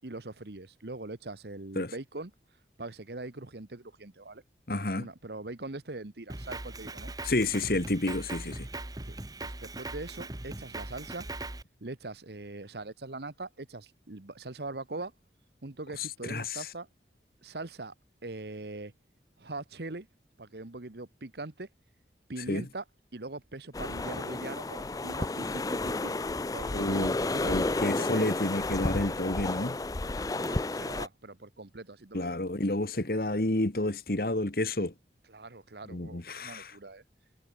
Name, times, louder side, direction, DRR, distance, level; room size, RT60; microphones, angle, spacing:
voice 1, 0.0-2.3 2.8-4.4 5.0-7.1 9.1-11.3 11.8-15.1 15.6-16.9 17.4-17.9 18.2-18.9 19.4-20.1 20.4-21.7 22.3-22.8 23.1-26.1 26.5-27.1 27.4-27.7 28.0-28.3 30.4-32.4 35.3-37.0, right 2 dB, 70° right, 1.3 m, -42 dB
voice 2, 4.7-5.1 7.2-8.7 16.0-16.7 22.5-22.6 26.7-27.1 27.4-29.8 32.1-34.9 35.9-36.8, left 2 dB, 55° left, 1.6 m, -30 dB
Drum kit, 6.3-11.6, right 2 dB, 20° right, 1.4 m, -40 dB
sound 1, 23.7-31.1, left 2 dB, 20° left, 0.4 m, -32 dB
head